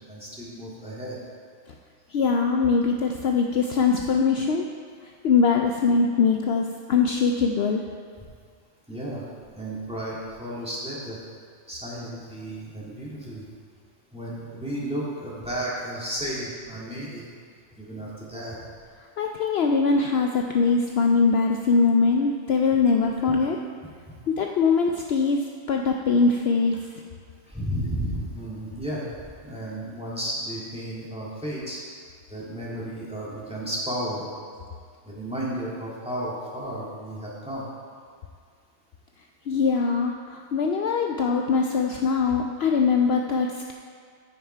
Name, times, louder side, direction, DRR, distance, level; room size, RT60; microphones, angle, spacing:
voice 1, 0.1-1.2 8.9-9.2 9.5-11.2 11.7-13.5 14.1-17.3 17.8-18.6 24.1-24.2 27.5-29.1 29.4-31.8 32.3-34.3 35.0-37.7, right 1 dB, 5° right, -7 dB, 2.2 m, -33 dB
voice 2, 2.1-4.7 5.2-7.8 19.2-23.6 24.3-26.8 39.5-43.7, left 5 dB, 65° left, 2 dB, 0.8 m, -22 dB
14.5 x 5.7 x 4.5 m, 2.1 s
omnidirectional pair, 1.3 m